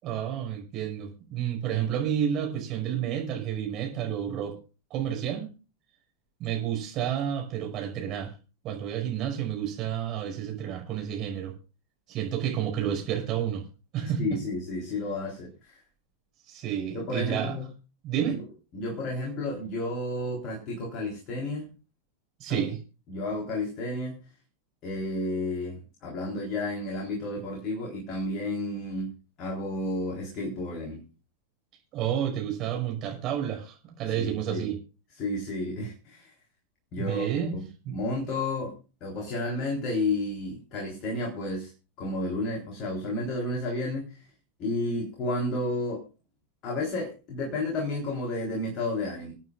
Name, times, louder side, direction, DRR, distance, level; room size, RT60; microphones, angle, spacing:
voice 1, 0.0-4.6 4.9-5.5 6.4-8.3 8.6-11.6 12.1-13.6 13.9-14.2 16.5-17.6 18.0-18.4 22.4-22.8 31.9-34.8 37.0-37.6 37.8-38.0, right 9 dB, 35° right, 2 dB, 5.8 m, -30 dB
voice 2, 14.0-15.8 16.9-17.7 18.7-21.7 22.5-22.7 23.1-24.2 24.8-29.1 29.4-31.0 34.1-34.7 35.2-36.3 36.9-37.6 37.9-38.7 39.0-41.7 42.0-44.2 44.6-46.0 46.6-49.3, left 2 dB, 35° left, 1 dB, 3.8 m, -31 dB
27.5 x 9.2 x 2.4 m, 0.33 s
figure-of-eight pair, 90°, 0 cm